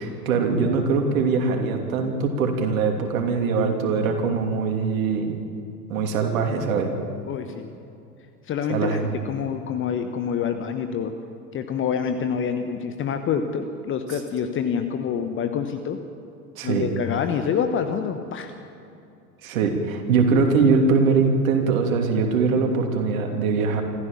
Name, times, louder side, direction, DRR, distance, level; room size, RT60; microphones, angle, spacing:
voice 1, 0.0-5.4 5.9-6.9 8.7-9.1 16.6-16.9 19.4-23.8, right 4 dB, 55° right, 3 dB, 3.1 m, -22 dB
voice 2, 7.3-7.7 8.5-9.0 9.2-11.1 11.5-16.0 16.6-18.5, left 7 dB, 25° left, 7 dB, 1.1 m, -26 dB
26.0 x 14.5 x 7.2 m, 2.6 s
figure-of-eight pair, 85°, 48 cm